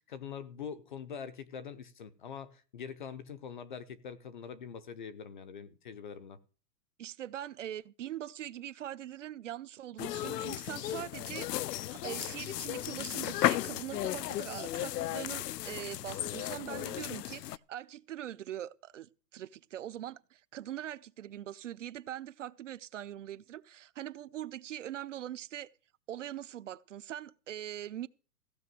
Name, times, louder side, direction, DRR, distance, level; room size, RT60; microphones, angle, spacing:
voice 1, 0.0-6.4, left 7 dB, 30° left, 0.6 m, -44 dB
voice 2, 7.0-25.7 26.1-28.1, right 12 dB, 50° right, 0.5 m, -42 dB
sound 1, 10.0-17.6, left 14 dB, 75° left, 0.6 m, -35 dB
15.5 x 5.9 x 7.6 m
hypercardioid pair, 170°, 49 cm